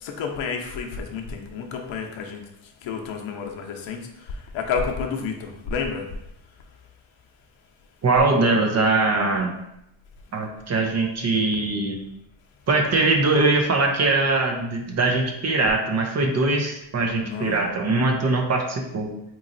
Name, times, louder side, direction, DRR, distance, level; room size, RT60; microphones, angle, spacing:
voice 1, 0.0-2.4 2.8-6.1 17.1-17.6, left 5 dB, 75° left, 2 dB, 0.7 m, -30 dB
voice 2, 8.0-9.5 10.3-12.0 12.7-19.1, right 3 dB, 35° right, 2 dB, 0.6 m, -22 dB
3.9 x 3.0 x 2.5 m, 0.82 s
cardioid pair, 125°, 47 cm